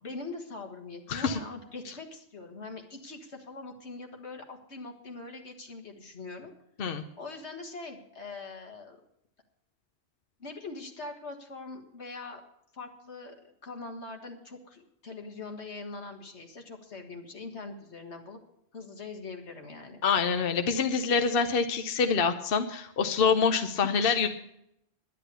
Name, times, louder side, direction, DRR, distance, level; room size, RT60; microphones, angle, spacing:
voice 1, 0.0-6.5 7.2-9.0 10.4-12.4 12.7-13.4 13.6-18.4 18.7-20.0 23.8-24.3, left 3 dB, 85° left, 4 dB, 2.0 m, -42 dB
voice 2, 1.1-1.4 6.8-7.0 20.0-24.3, left 5 dB, 60° left, 7 dB, 1.0 m, -26 dB
11.0 x 10.0 x 6.9 m, 0.77 s
omnidirectional pair, 1.1 m